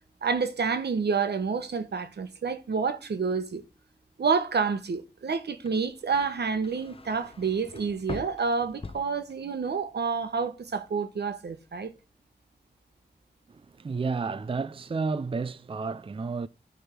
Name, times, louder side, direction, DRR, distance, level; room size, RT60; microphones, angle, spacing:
voice 1, 0.2-3.6 4.2-11.9, right 5 dB, 80° right, 1.0 m, -28 dB
sound 1, 5.5-9.8 10.1-10.7, left 4 dB, 35° left, 0.7 m, -44 dB
voice 2, 13.5-16.5, right 4 dB, 35° right, 0.4 m, -31 dB
9.9 x 3.5 x 5.9 m
wide cardioid pair, 65°, 17 cm